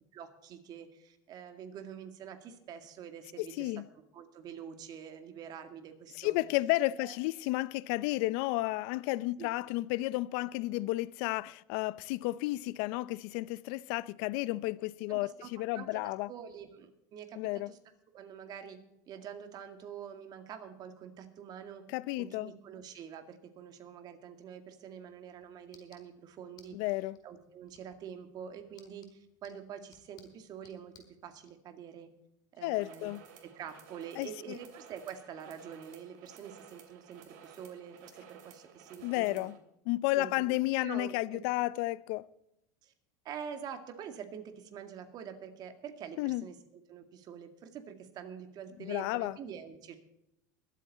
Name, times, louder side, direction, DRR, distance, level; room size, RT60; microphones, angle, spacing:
voice 1, 0.1-3.7 4.1-6.4 7.0-7.2 9.4-9.5 15.1-17.4 17.7-17.8 18.1-18.8 19.1-21.8 22.2-26.7 27.2-30.9 31.2-32.1 32.5-33.1 33.4-39.5 40.2-40.5 40.8-41.4 42.8-42.9 43.2-46.6 46.9-50.0, right 8 dB, 40° right, 2.2 m, -46 dB
voice 2, 3.4-3.8 6.2-16.3 17.4-17.7 21.9-22.5 26.7-27.2 32.6-33.2 34.2-34.6 39.0-39.5 39.9-42.2 46.2-46.4 48.8-49.4, left 19 dB, 65° left, 0.6 m, -32 dB
sound 1, 24.9-31.5, left 7 dB, 40° left, 4.5 m, -65 dB
sound 2, 32.7-39.6, right 7 dB, 75° right, 2.9 m, -55 dB
22.5 x 8.4 x 4.2 m
supercardioid pair, 125°, 10 cm